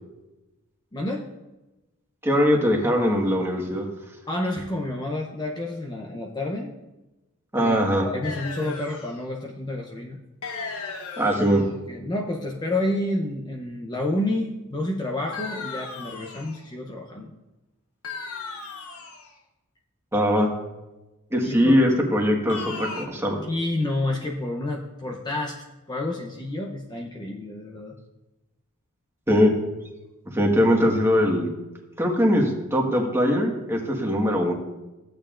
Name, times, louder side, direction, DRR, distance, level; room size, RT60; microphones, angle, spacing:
voice 1, 0.9-1.3 4.3-6.7 7.6-7.8 8.0-10.2 11.3-11.6 11.9-17.3 21.4-21.8 23.4-28.0, left 1 dB, 20° left, 1 dB, 0.7 m, -29 dB
voice 2, 2.2-3.9 7.5-8.1 11.2-11.6 20.1-20.5 21.3-23.4 29.3-29.5 30.3-31.5 32.0-34.5, equal, 10° right, 0 dB, 1.5 m, -21 dB
sound 1, 8.2-9.2 10.4-11.7 15.3-16.6 18.0-19.3 22.5-23.1, left 4 dB, 75° left, 1.2 m, -36 dB
15.0 x 9.0 x 2.5 m, 1.0 s
head